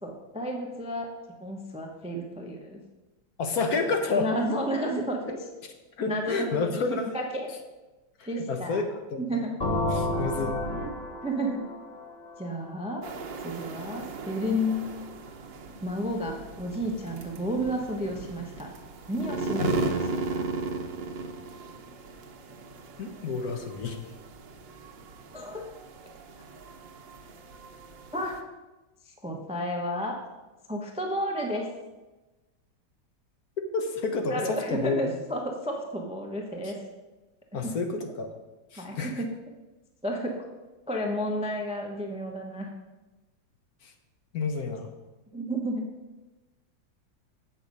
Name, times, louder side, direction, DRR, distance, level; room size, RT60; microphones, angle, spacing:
voice 1, 0.0-1.1 1.4-2.8 4.1-5.2 6.1-6.6 7.1-7.2 8.3-8.8 9.2-9.5 10.1-10.5 11.2-11.6 12.4-13.0 13.4-14.8 15.8-18.7 19.1-20.5 25.3-25.6 28.1-28.4 29.1-30.2 30.7-31.7 34.3-36.8 38.8-39.3 40.0-40.5 40.9-42.7 45.3-45.9, equal, 5° right, 1 dB, 0.4 m, -31 dB
voice 2, 3.4-4.3 5.3-5.4 6.0-7.2 8.2-8.8 9.1-9.4 9.9-10.5 19.6-19.9 23.0-24.0 33.7-35.1 36.6-36.7 37.5-38.3 38.7-39.2 43.8-43.9 44.3-44.9, left 4 dB, 60° left, 5 dB, 1.2 m, -30 dB
sound 1, 9.6-13.3, left 1 dB, 40° left, 0.7 m, -31 dB
sound 2, 13.0-28.4, right 3 dB, 75° right, 1.5 m, -37 dB
8.0 x 6.7 x 5.3 m, 1.1 s
omnidirectional pair, 2.0 m